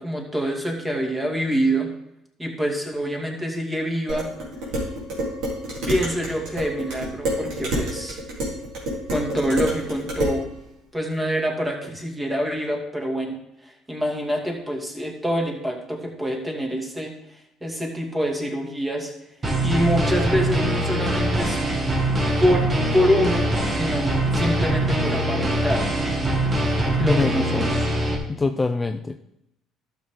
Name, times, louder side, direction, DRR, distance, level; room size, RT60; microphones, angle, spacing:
voice 1, 0.0-1.9 2.4-4.3 5.9-8.2 9.1-10.5 10.9-19.1 19.6-21.7 22.4-22.7 22.9-25.9 27.0-27.7, equal, 15° right, 1 dB, 2.5 m, -25 dB
Dishes pots and pans, 4.1-10.4, equal, 75° right, 3.6 m, -28 dB
sound 1, 19.4-28.1, right 1 dB, 30° right, 2.2 m, -23 dB
voice 2, 27.0-27.7 28.3-29.2, left 3 dB, 20° left, 7 dB, 0.5 m, -25 dB
12.0 x 6.7 x 3.9 m, 0.81 s
supercardioid pair, 80°, 0 cm